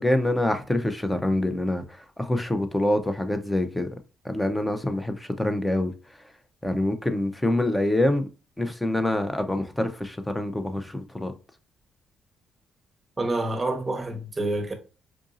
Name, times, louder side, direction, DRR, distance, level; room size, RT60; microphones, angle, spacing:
voice 1, 0.0-1.8 2.2-3.9 4.2-5.9 6.6-8.3 8.6-11.3, left 1 dB, 10° left, 0.6 m, -25 dB
voice 2, 13.2-14.7, right 2 dB, 25° right, 1.0 m, -27 dB
4.8 x 2.6 x 2.5 m
cardioid pair, 90°, 0 cm